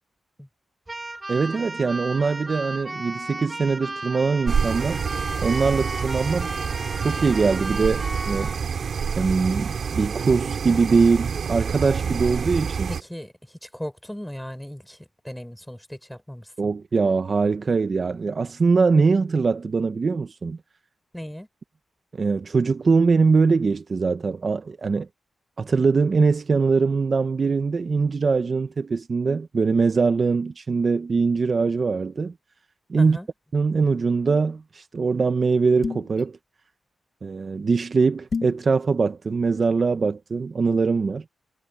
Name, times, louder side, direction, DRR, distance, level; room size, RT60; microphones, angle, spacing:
Keyboard (musical), 0.9-8.6, right 2 dB, 20° right, 1.3 m, -34 dB
voice 1, 1.3-5.0 5.4-6.6 7.0-8.5 9.2-12.9 16.6-20.6 22.1-25.1 25.6-32.3 32.9-33.2 33.5-36.4 37.2-41.2, right 4 dB, 45° right, 1.0 m, -22 dB
sound 1, 4.5-13.0, right 6 dB, 65° right, 4.6 m, -27 dB
voice 2, 12.9-13.3 13.6-15.0 15.2-16.7 21.1-21.5 33.0-33.3, equal, 5° left, 5.3 m, -37 dB
sound 2, 35.8-36.2 38.3-38.6, left 5 dB, 55° left, 2.0 m, -29 dB
cardioid pair, 85°, 0 cm